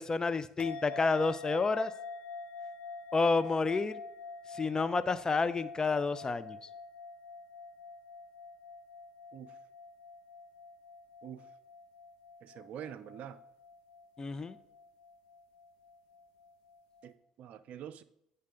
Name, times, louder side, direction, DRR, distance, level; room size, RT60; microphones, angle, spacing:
voice 1, 0.0-1.9 3.1-4.0 4.5-6.6 14.2-14.6, left 4 dB, 25° left, 14 dB, 0.6 m, -30 dB
sound 1, 0.6-17.1, left 4 dB, 75° left, 0.8 m, -47 dB
voice 2, 12.4-13.4 17.0-18.0, right 9 dB, 60° right, 12 dB, 0.5 m, -46 dB
9.5 x 5.4 x 3.7 m, 0.76 s
hypercardioid pair, 60°, 3 cm